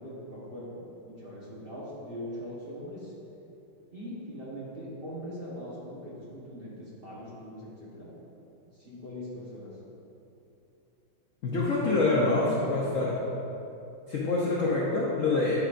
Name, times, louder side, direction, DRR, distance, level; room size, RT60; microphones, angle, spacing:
voice 1, 0.0-3.1 3.9-8.1 8.7-9.7, equal, 35° right, -9 dB, 1.2 m, -41 dB
voice 2, 11.4-13.1 14.1-15.6, left 3 dB, 60° left, -5 dB, 0.8 m, -26 dB
10.5 x 4.9 x 2.6 m, 2.8 s
omnidirectional pair, 2.3 m